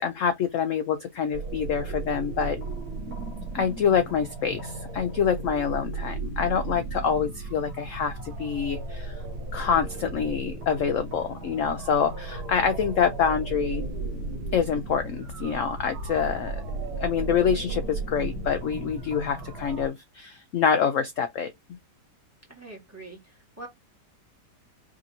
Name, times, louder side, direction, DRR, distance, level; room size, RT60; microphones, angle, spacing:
voice 1, 0.0-2.6 3.5-9.2 9.5-13.8 14.5-16.6 17.0-21.5, left 7 dB, 65° left, 0.8 m, -26 dB
sound 1, 1.3-19.9, right 3 dB, 65° right, 1.5 m, -35 dB
voice 2, 22.5-23.7, right 2 dB, 10° right, 1.3 m, -44 dB
4.9 x 2.8 x 2.7 m
omnidirectional pair, 1.8 m